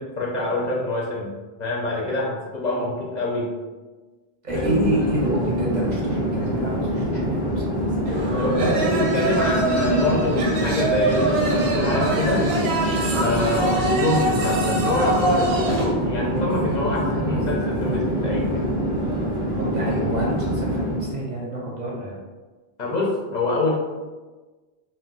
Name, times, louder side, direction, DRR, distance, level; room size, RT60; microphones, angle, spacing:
voice 1, 0.0-1.3 1.6-3.5 4.5-4.9 8.4-12.5 13.1-18.7 22.8-23.7, left 2 dB, 55° left, -4 dB, 0.6 m, -25 dB
voice 2, 4.4-7.8 19.5-22.1, right 2 dB, 55° right, -3 dB, 0.6 m, -29 dB
Conversation / Chatter / Fixed-wing aircraft airplane, 4.5-21.2, equal, 5° right, 0.5 m, -25 dB
sound 1, 8.1-15.9, right 2 dB, 90° right, 0.9 m, -24 dB
2.3 x 2.2 x 3.7 m, 1.3 s
omnidirectional pair, 1.0 m